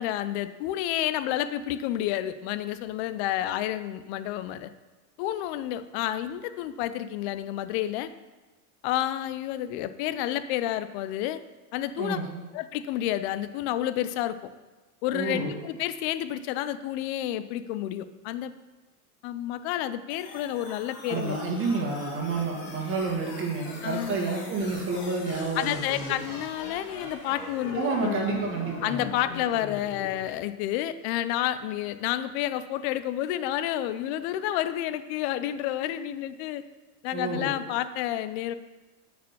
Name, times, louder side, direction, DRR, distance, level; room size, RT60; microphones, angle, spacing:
voice 1, 0.0-4.7 5.2-8.1 8.8-11.4 11.7-12.2 12.5-14.4 15.0-18.5 19.2-21.4 23.8-24.2 25.6-28.3 28.8-36.6 37.0-38.5, left 12 dB, 45° left, 13 dB, 0.5 m, -30 dB
voice 2, 12.0-12.4 15.1-15.6 21.1-26.2 27.7-29.1 37.1-37.5, right 3 dB, 25° right, -1 dB, 1.7 m, -29 dB
sound 1, 20.1-30.1, left 3 dB, 85° left, 2.1 m, -42 dB
9.2 x 5.1 x 5.5 m, 1.2 s
supercardioid pair, 140°, 46 cm